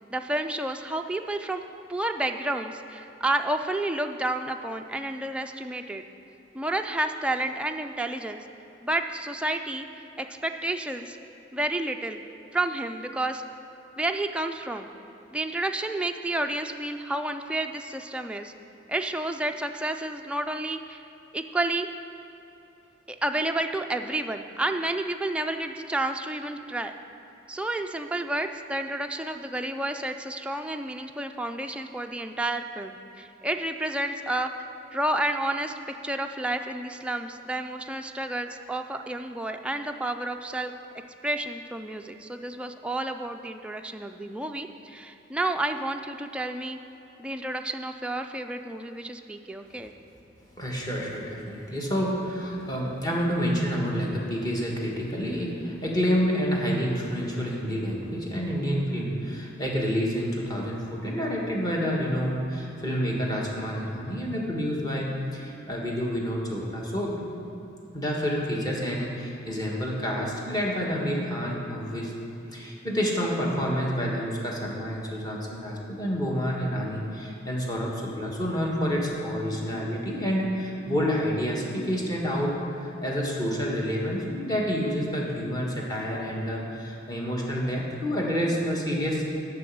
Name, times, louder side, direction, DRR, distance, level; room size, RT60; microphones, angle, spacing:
voice 1, 0.1-1.6 1.9-6.0 6.5-8.4 8.8-11.2 11.5-12.2 12.5-13.4 14.0-14.9 15.3-18.5 18.9-21.0 21.3-21.9 23.2-26.9 27.5-34.5 34.9-35.8 36.0-40.7 41.2-46.8 47.2-49.9, right 1 dB, 5° right, 5 dB, 0.3 m, -30 dB
voice 2, 50.6-67.1 67.9-72.1 72.5-89.2, equal, 20° left, -3 dB, 1.4 m, -28 dB
7.5 x 6.0 x 7.7 m, 2.9 s
head